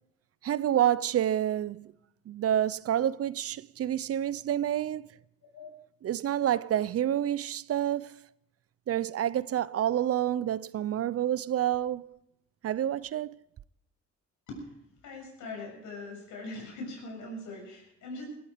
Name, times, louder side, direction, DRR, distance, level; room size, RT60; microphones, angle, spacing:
voice 1, 0.4-1.9 2.3-5.0 6.0-8.2 8.9-12.1 12.6-13.4, right 11 dB, 50° right, 0.5 m, -28 dB
voice 2, 15.0-18.2, left 2 dB, 80° left, 7.0 m, -41 dB
20.0 x 13.5 x 5.0 m
cardioid pair, 90°, 30 cm